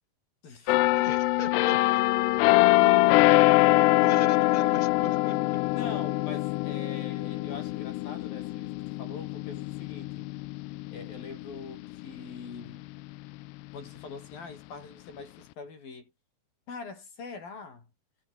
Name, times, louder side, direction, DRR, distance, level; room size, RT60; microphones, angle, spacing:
voice 1, 0.4-0.8 2.5-4.8 5.7-10.3 10.9-12.9 13.7-16.1 16.7-17.9, left 4 dB, 55° left, 7.5 m, -43 dB
sound 1, 0.7-12.2 12.7-12.9, left 19 dB, 85° left, 2.8 m, -24 dB
voice 2, 0.9-2.0 4.0-5.6, left 3 dB, 10° left, 5.0 m, -40 dB
omnidirectional pair, 4.9 m